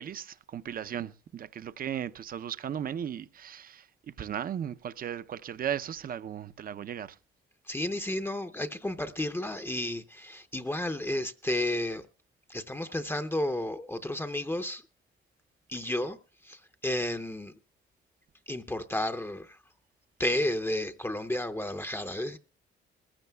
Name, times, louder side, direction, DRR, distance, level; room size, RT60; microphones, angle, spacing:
voice 1, 0.0-7.2, right 9 dB, 45° right, 0.6 m, -36 dB
voice 2, 7.7-12.1 12.5-14.8 15.7-16.2 16.4-17.5 18.5-19.6 20.2-22.4, left 1 dB, 10° left, 0.6 m, -32 dB
20.5 x 15.0 x 2.2 m
cardioid pair, 90°, 20 cm